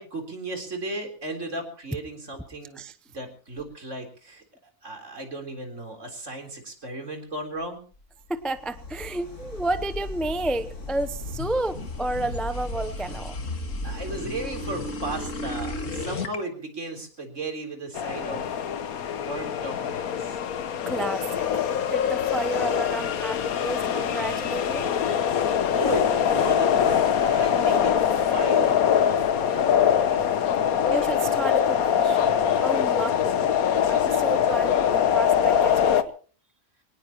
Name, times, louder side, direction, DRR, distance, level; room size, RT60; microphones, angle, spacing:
voice 1, 0.0-2.8 3.1-4.4 4.8-7.8 13.8-20.4 25.8-30.3, right 2 dB, 55° right, 3 dB, 4.1 m, -36 dB
sound 1, 8.3-14.0, left 1 dB, 90° left, 4.0 m, -45 dB
sound 2, 8.3-16.4, left 2 dB, 60° left, 2.2 m, -34 dB
voice 2, 8.3-13.4 20.9-21.6 21.9-25.0 30.9-33.5 33.9-36.1, right 2 dB, ahead, 10 dB, 0.4 m, -31 dB
sound 3, 17.9-36.0, left 8 dB, 75° left, 1.4 m, -23 dB
24.0 x 19.0 x 3.0 m, 0.40 s
omnidirectional pair, 1.6 m